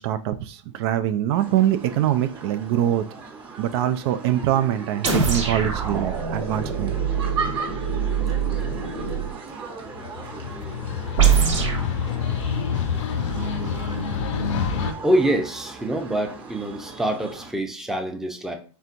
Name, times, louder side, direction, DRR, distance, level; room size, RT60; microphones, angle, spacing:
voice 1, 0.0-3.0 3.6-7.0, right 11 dB, 55° right, 9 dB, 0.4 m, -23 dB
sound 1, 1.4-17.5, right 4 dB, 30° right, 1.3 m, -38 dB
sound 2, 5.0-9.3 11.2-11.9, right 7 dB, 85° right, 1.8 m, -23 dB
sound 3, 9.9-14.9, left 6 dB, 70° left, 0.6 m, -27 dB
voice 2, 15.0-18.6, right 1 dB, 5° right, 3 dB, 0.6 m, -25 dB
4.3 x 3.4 x 2.5 m, 0.39 s
hypercardioid pair, 115°, 16 cm